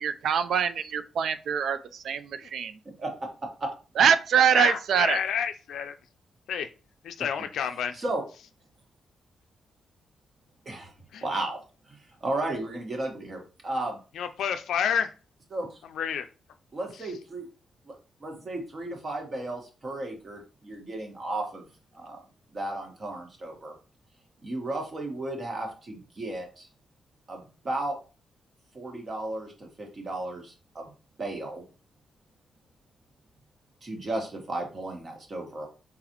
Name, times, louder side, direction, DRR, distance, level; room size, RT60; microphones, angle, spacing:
voice 1, 0.0-2.8 4.0-5.2, right 7 dB, 75° right, 0.4 m, -24 dB
voice 2, 4.5-5.9 6.5-6.7 7.0-8.0 11.1-11.2 14.2-15.1 16.0-16.3, left 8 dB, 85° left, 0.4 m, -29 dB
voice 3, 11.2-14.0 15.5-15.8 16.7-17.4 17.9-21.6 21.9-22.2 22.5-23.7 24.4-26.7 27.3-28.0 28.7-30.9 31.2-31.6 33.8-35.7, right 2 dB, 40° right, 1.5 m, -34 dB
4.2 x 3.9 x 3.0 m
cardioid pair, 100°, 0 cm